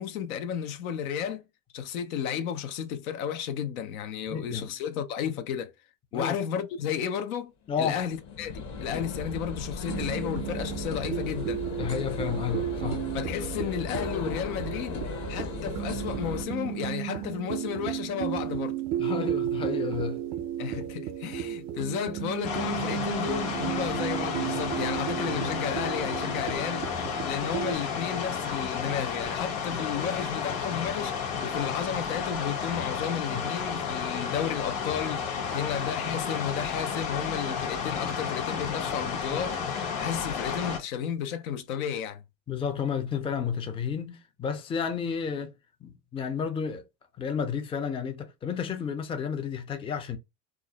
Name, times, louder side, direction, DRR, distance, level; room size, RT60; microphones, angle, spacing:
voice 1, 0.0-1.4 1.7-5.7 6.1-7.5 7.8-11.6 13.1-15.0 15.3-18.8 20.6-26.9 27.2-31.1 31.4-39.6 40.0-42.2, left 8 dB, 90° left, 0.6 m, -33 dB
voice 2, 4.3-4.7 6.1-6.4 7.7-8.0 11.8-13.0 19.0-20.2 33.3-33.5 35.5-35.7 42.5-45.5 45.8-46.8 47.2-50.2, left 7 dB, 15° left, 0.4 m, -31 dB
sound 1, 7.7-16.4, left 3 dB, 45° left, 0.7 m, -36 dB
sound 2, 9.9-27.7, right 12 dB, 70° right, 0.5 m, -34 dB
sound 3, 22.4-40.8, left 6 dB, 70° left, 1.0 m, -32 dB
2.4 x 2.0 x 2.7 m
supercardioid pair, 95°, 40 cm